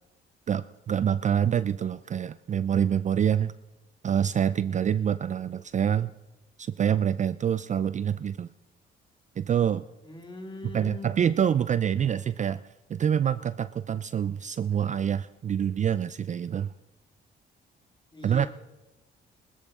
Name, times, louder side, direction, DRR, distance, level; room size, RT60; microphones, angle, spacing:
voice 1, 0.5-3.5 4.0-6.1 6.6-8.5 9.4-9.8 10.7-12.6 12.9-16.7 18.2-18.5, right 8 dB, 40° right, 14 dB, 0.4 m, -26 dB
voice 2, 10.0-11.2 18.1-18.5, left 2 dB, 25° left, 4 dB, 2.1 m, -41 dB
20.0 x 13.5 x 3.6 m, 1.0 s
cardioid pair, 90°, 20 cm